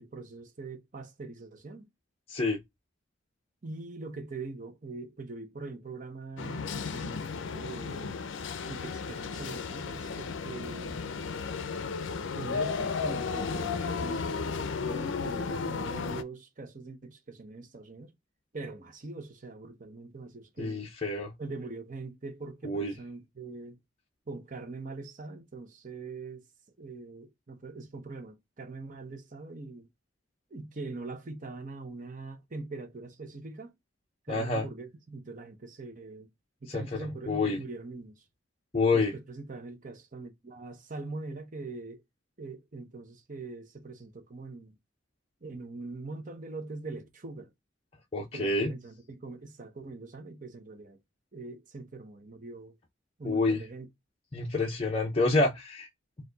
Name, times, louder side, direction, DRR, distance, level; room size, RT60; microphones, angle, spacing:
voice 1, 0.0-1.9 3.6-8.2 8.7-11.2 12.3-18.1 18.5-20.8 21.4-23.8 24.3-26.4 26.8-29.9 30.5-33.7 34.3-36.3 36.6-38.1 38.9-42.0 42.4-44.7 45.4-47.5 48.2-51.0 51.3-52.7 53.2-53.9, right 3 dB, 40° right, 0.8 m, -42 dB
sound 1, 6.4-16.2, left 5 dB, 75° left, 0.5 m, -34 dB
voice 2, 20.6-21.3 22.6-22.9 34.3-34.7 36.7-36.8 37.3-37.6 38.7-39.1 48.1-48.7 53.2-53.6 54.3-55.9, left 3 dB, 30° left, 0.7 m, -27 dB
4.5 x 2.6 x 3.8 m
head